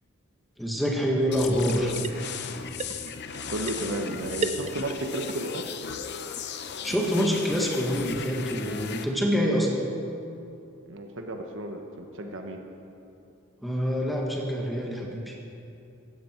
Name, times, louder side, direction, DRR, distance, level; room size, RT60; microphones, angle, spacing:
voice 1, 0.6-2.0 6.8-9.7 13.6-15.4, equal, ahead, -2 dB, 1.7 m, -26 dB
sound 1, 1.3-9.1, left 7 dB, 55° left, 0.8 m, -37 dB
sound 2, 1.7-2.5 2.8-5.3 5.6-5.7 5.9-6.0 6.4-6.5 6.8-6.9 7.1-7.2 7.6-7.7, right 4 dB, 30° right, 0.4 m, -36 dB
voice 2, 3.5-5.7 10.9-12.6, right 1 dB, 65° right, 4 dB, 1.3 m, -33 dB
16.5 x 15.0 x 4.6 m, 2.7 s
head